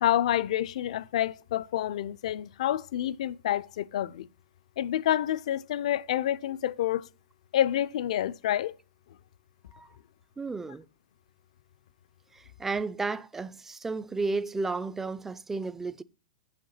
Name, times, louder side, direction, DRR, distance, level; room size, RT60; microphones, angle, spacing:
voice 1, 0.0-4.3 4.8-7.1 7.5-8.7, left 12 dB, 65° left, 0.4 m, -28 dB
voice 2, 10.4-10.8 12.3-16.0, right 3 dB, 10° right, 0.4 m, -33 dB
7.0 x 6.5 x 5.5 m
hypercardioid pair, 125°, 4 cm